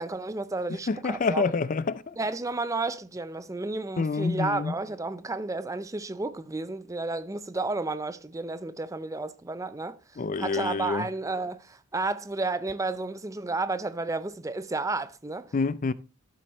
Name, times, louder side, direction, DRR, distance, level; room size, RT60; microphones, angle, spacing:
voice 1, 0.0-1.5 2.2-15.5, right 3 dB, 15° right, 0.5 m, -32 dB
voice 2, 0.9-2.2 4.0-4.7 10.2-11.1 15.5-15.9, left 4 dB, 40° left, 0.4 m, -27 dB
13.5 x 7.7 x 3.1 m
head